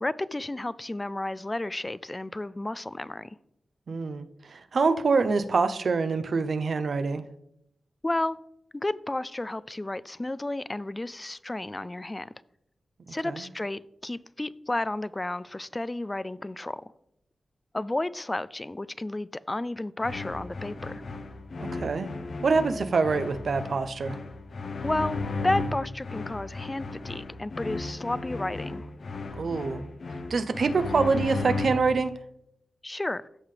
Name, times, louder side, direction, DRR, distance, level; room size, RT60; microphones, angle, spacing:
voice 1, 0.0-3.4 8.0-8.4 8.7-12.3 13.1-16.9 17.7-21.0 24.8-28.9 32.8-33.3, left 2 dB, 20° left, 0.3 m, -32 dB
voice 2, 3.9-7.2 13.1-13.4 21.6-22.1 22.4-24.2 29.4-29.9 30.3-32.1, right 4 dB, 70° right, 0.6 m, -26 dB
sound 1, 20.0-32.0, left 3 dB, 70° left, 0.9 m, -35 dB
14.0 x 5.6 x 3.3 m
cardioid pair, 70°, 0 cm